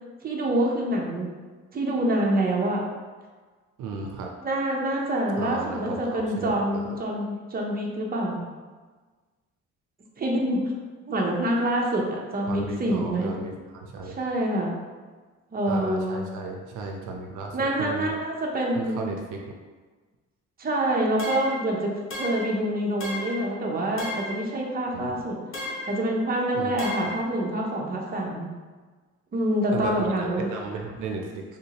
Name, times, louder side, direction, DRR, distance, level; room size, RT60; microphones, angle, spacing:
voice 1, 0.2-1.3 1.7-2.8 4.4-8.4 10.2-10.6 11.1-13.3 14.0-14.7 15.5-16.2 17.5-19.0 20.6-21.9 22.2-25.4 25.9-28.5 29.3-30.5, right 1 dB, 30° right, -1 dB, 0.7 m, -26 dB
voice 2, 3.8-4.3 5.4-6.8 12.5-14.2 15.7-18.1 18.7-19.4 24.9-25.1 26.5-27.1 29.7-31.4, right 4 dB, 80° right, 1 dB, 0.5 m, -34 dB
sound 1, 21.2-21.6 22.1-22.6 23.0-23.5 24.0-24.4 25.5-26.0 26.8-27.2, left 1 dB, 45° left, 0.9 m, -34 dB
3.5 x 2.7 x 2.8 m, 1.4 s
cardioid pair, 90°, 30 cm